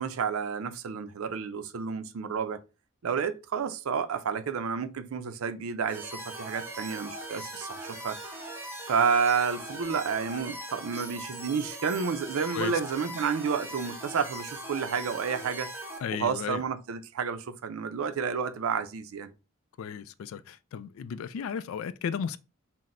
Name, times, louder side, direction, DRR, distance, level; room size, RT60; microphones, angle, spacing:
voice 1, 0.0-2.6 3.0-8.2 8.9-15.7 16.2-19.3, right 6 dB, 85° right, 0.4 m, -30 dB
sound 1, 5.9-16.0, right 1 dB, 10° right, 0.6 m, -40 dB
voice 2, 16.0-16.6 19.8-22.4, left 7 dB, 75° left, 0.3 m, -34 dB
5.8 x 2.1 x 2.5 m
head